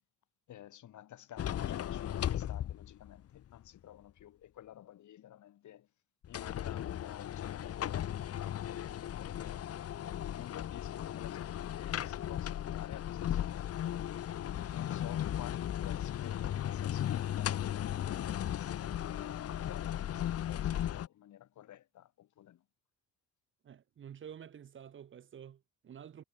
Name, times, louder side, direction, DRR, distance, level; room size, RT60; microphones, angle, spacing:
voice 1, 0.5-5.9 6.2-9.7 10.3-14.1 14.6-22.6, left 12 dB, 75° left, 3.4 m, -52 dB
sound 1, 1.4-3.2 3.6-3.7 6.2-21.1, left 11 dB, 55° left, 0.8 m, -36 dB
voice 2, 23.6-26.2, right 8 dB, 40° right, 0.7 m, -50 dB
cardioid pair, 90°, 30 cm